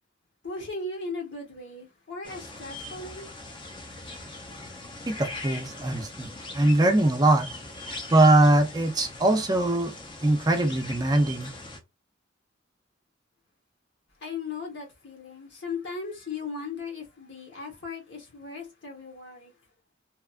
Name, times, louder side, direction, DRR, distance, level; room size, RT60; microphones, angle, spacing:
voice 1, 0.4-3.3 14.2-19.5, left 4 dB, 65° left, 1.2 m, -37 dB
sound 1, 2.2-11.8, left 2 dB, 25° left, 0.6 m, -41 dB
voice 2, 5.1-7.5 8.1-9.9 10.2-11.5, right 2 dB, 20° right, 0.5 m, -22 dB
2.9 x 2.3 x 2.4 m
head